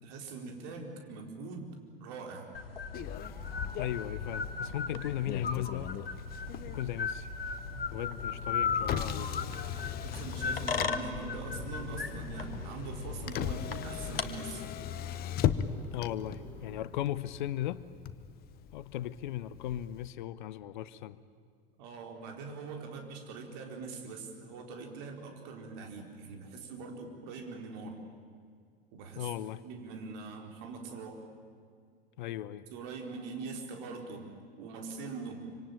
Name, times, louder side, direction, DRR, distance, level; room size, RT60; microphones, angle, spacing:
voice 1, 0.0-2.5 10.1-14.6 21.8-28.0 28.9-29.3 29.6-31.2 32.7-35.5, right 4 dB, 50° right, 3 dB, 4.3 m, -43 dB
sound 1, 2.5-14.3, left 5 dB, 75° left, 1.6 m, -37 dB
Motor vehicle (road), 2.9-20.1, left 10 dB, 30° left, 1.0 m, -39 dB
voice 2, 3.8-5.9 6.7-7.3 7.9-9.3 15.9-17.8 18.7-21.2 29.2-29.6 32.2-32.6, left 12 dB, 55° left, 17 dB, 0.9 m, -37 dB
sound 2, 8.0-16.8, left 4 dB, 5° left, 6.0 m, -48 dB
25.5 x 25.5 x 9.0 m, 2.1 s
figure-of-eight pair, 85°, 29 cm